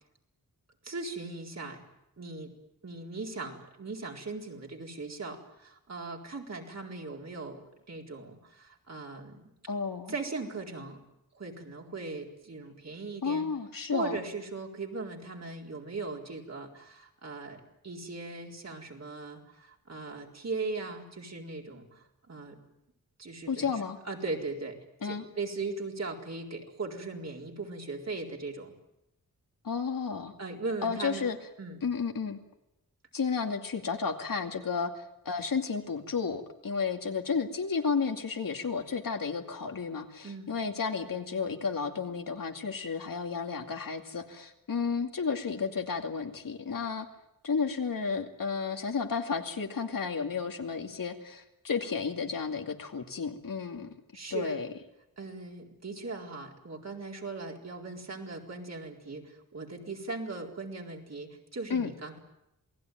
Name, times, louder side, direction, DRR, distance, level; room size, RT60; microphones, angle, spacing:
voice 1, 0.8-1.8 2.2-2.5 2.8-7.6 7.9-9.4 10.1-11.0 11.3-13.5 13.9-22.6 23.2-23.7 24.0-24.8 25.0-28.7 30.4-31.3 31.6-31.8 40.2-40.5 54.1-54.6 55.2-62.2, right 3 dB, 50° right, 0 dB, 4.2 m, -39 dB
voice 2, 9.7-10.1 13.2-14.2 23.5-24.0 25.0-25.2 29.6-30.3 30.8-31.4 31.8-32.4 33.1-47.1 47.4-53.9 54.3-54.7 61.7-61.9, left 5 dB, 70° left, 4 dB, 2.5 m, -32 dB
28.0 x 19.5 x 9.3 m, 0.87 s
wide cardioid pair, 130°, 35 cm